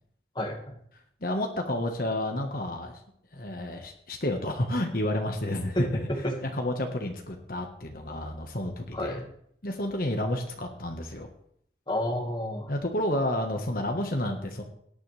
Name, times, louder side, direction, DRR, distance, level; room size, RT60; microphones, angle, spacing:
voice 1, 0.4-0.7 5.8-6.4 8.9-9.3 11.9-12.7, left 1 dB, 25° left, 2 dB, 1.9 m, -30 dB
voice 2, 1.2-3.0 3.3-6.1 6.5-9.2 9.6-11.3 12.7-14.6, left 1 dB, 50° left, 3 dB, 1.5 m, -30 dB
18.0 x 10.5 x 3.4 m, 0.68 s
head